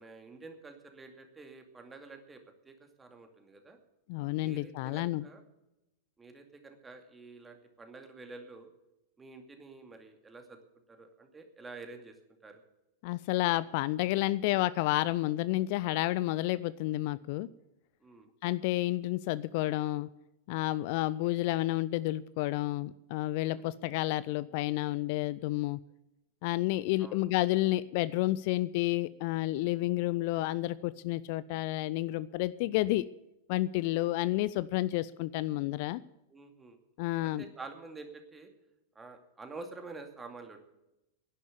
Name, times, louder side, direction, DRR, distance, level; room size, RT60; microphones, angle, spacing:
voice 1, 0.0-3.8 4.4-5.4 6.2-8.7 9.2-10.6 10.9-12.1 12.4-12.6 18.0-18.3 21.2-21.4 23.4-23.7 27.0-27.3 33.9-34.4 36.3-36.8 37.2-38.5 39.0-40.6, right 3 dB, 15° right, 5 dB, 2.4 m, -49 dB
voice 2, 4.1-5.3 13.0-17.5 18.4-20.1 20.5-25.8 26.4-33.1 33.5-36.0 37.0-37.4, left 17 dB, 45° left, 18 dB, 0.4 m, -30 dB
11.0 x 11.0 x 8.2 m, 0.90 s
figure-of-eight pair, 90°, 0 cm